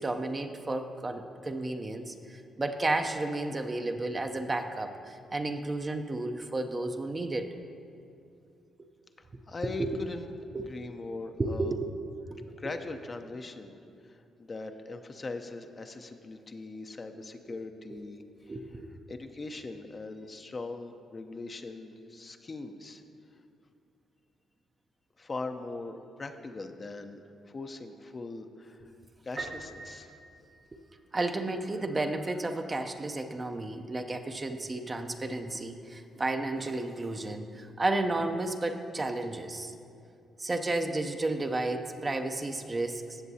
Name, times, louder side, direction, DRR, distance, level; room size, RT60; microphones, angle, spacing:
voice 1, 0.0-7.5 9.8-10.0 10.5-10.7 11.4-11.9 12.3-12.4 17.5-17.6 18.5-18.9 30.7-30.8 31.1-39.7 40.4-43.0, right 2 dB, 30° right, 6 dB, 0.6 m, -32 dB
voice 2, 9.2-10.3 10.7-11.8 12.6-18.2 18.7-18.8 19.1-23.0 23.3-23.4 25.2-28.9 29.2-30.2, left 3 dB, 35° left, 6 dB, 0.6 m, -41 dB
Piano, 29.4-31.2, right 3 dB, 55° right, 1.1 m, -43 dB
16.0 x 6.9 x 2.8 m, 2.5 s
supercardioid pair, 60°, 0 cm